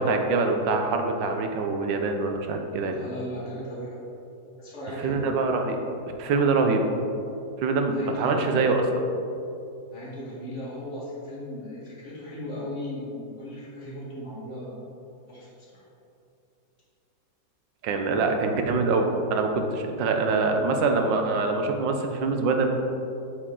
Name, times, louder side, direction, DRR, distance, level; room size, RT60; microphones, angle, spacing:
voice 1, 0.0-3.0 5.0-5.8 6.2-6.8 7.6-8.8 17.8-22.7, right 3 dB, 90° right, 4 dB, 1.4 m, -24 dB
voice 2, 2.9-4.1 4.6-5.3 7.8-8.6 9.9-14.8 15.3-15.9, left 1 dB, 40° left, -8 dB, 2.1 m, -37 dB
8.1 x 4.9 x 3.7 m, 2.7 s
omnidirectional pair, 1.9 m